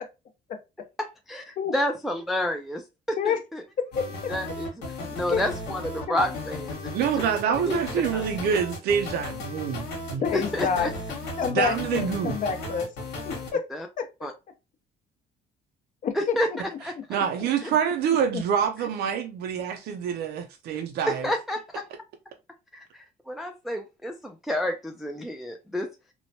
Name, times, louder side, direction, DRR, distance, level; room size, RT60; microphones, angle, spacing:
voice 1, 1.0-2.8 3.1-3.6 4.3-4.7 5.1-6.9 7.7-7.8 8.1-8.2 10.3-10.9 13.7-13.9 14.2-14.3 16.2-16.5 16.8-16.9 21.1-21.8 23.3-25.9, left 1 dB, ahead, 0.3 m, -29 dB
voice 2, 3.8-4.3 5.3-5.5 6.1-6.2 10.2-10.9 11.4-12.9 13.3-13.6 14.0-14.1 16.0-16.6 17.1-17.2 18.3-18.4, left 6 dB, 50° left, 0.6 m, -28 dB
sound 1, 3.9-13.5, left 2 dB, 90° left, 1.1 m, -35 dB
voice 3, 6.9-10.2 11.5-12.4 16.8-21.3, right 8 dB, 70° right, 0.5 m, -26 dB
3.0 x 2.1 x 2.7 m
cardioid pair, 110°, 17 cm